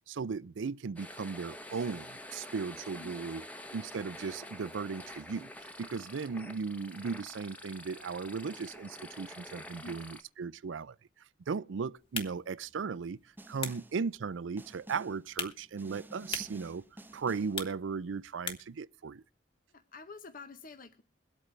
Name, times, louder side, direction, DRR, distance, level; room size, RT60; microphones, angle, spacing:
voice 1, 0.1-3.4 3.7-5.5 5.8-10.9 11.5-13.2 13.5-16.8 17.1-19.2, right 5 dB, 90° right, 0.5 m, -37 dB
sound 1, 1.0-10.2, left 1 dB, 10° left, 0.9 m, -47 dB
voice 2, 2.9-3.5 9.7-10.0 13.7-13.8 19.7-21.0, left 3 dB, 45° left, 0.8 m, -50 dB
sound 2, 12.0-18.8, left 4 dB, 30° left, 1.3 m, -44 dB
Snare drum, 13.4-14.1 14.6-15.3 15.8-17.7, right 1 dB, 10° right, 0.5 m, -51 dB
22.5 x 8.4 x 3.2 m
head